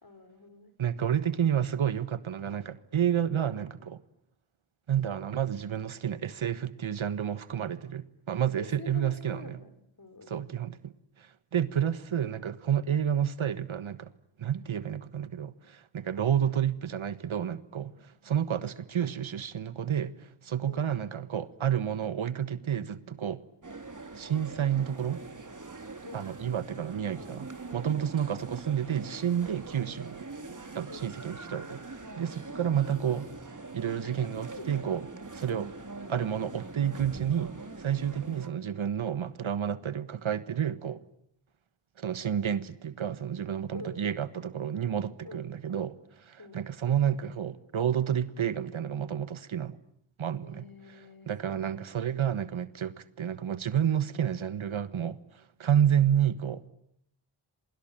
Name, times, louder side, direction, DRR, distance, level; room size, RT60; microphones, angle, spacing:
voice 1, 0.0-0.7 8.6-10.4 20.7-20.9 26.0-26.3 27.1-27.9 30.9-31.2 32.4-32.6 34.6-34.7 43.7-44.3 45.2-45.4 46.4-46.6 50.4-51.7, left 3 dB, 45° left, 5.0 m, -47 dB
voice 2, 0.8-4.0 4.9-9.6 10.3-10.9 11.2-14.1 14.4-23.4 24.2-25.2 26.1-30.2 30.7-33.3 33.7-35.1 35.3-35.7 36.1-41.0 42.0-49.8 50.2-50.7 51.3-56.7, right 9 dB, 70° right, 1.5 m, -30 dB
sound 1, 23.6-38.5, right 3 dB, 40° right, 3.4 m, -43 dB
28.0 x 24.0 x 8.9 m
cardioid pair, 40°, 49 cm